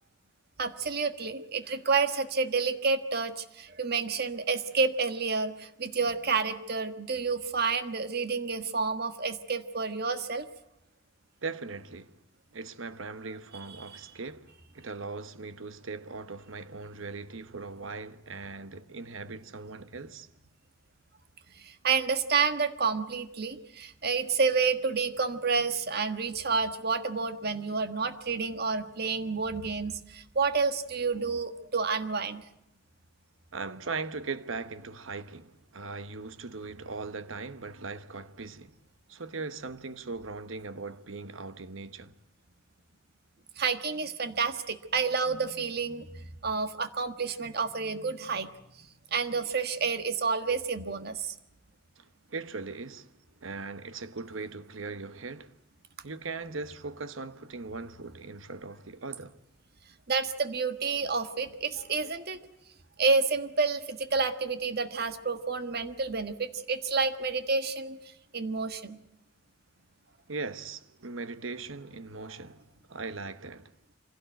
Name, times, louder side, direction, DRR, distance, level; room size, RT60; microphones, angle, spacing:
voice 1, 0.6-10.5 21.5-32.4 43.6-48.5 49.1-51.3 60.1-62.4 63.0-68.0 68.3-69.0 72.2-72.3, right 4 dB, 55° right, 1.5 m, -29 dB
voice 2, 11.4-12.2 12.5-20.3 33.5-38.8 39.1-42.1 52.0-53.1 53.4-55.5 56.0-59.4 70.3-72.6 72.9-73.7, right 4 dB, 90° right, 1.2 m, -39 dB
25.0 x 17.0 x 9.1 m
head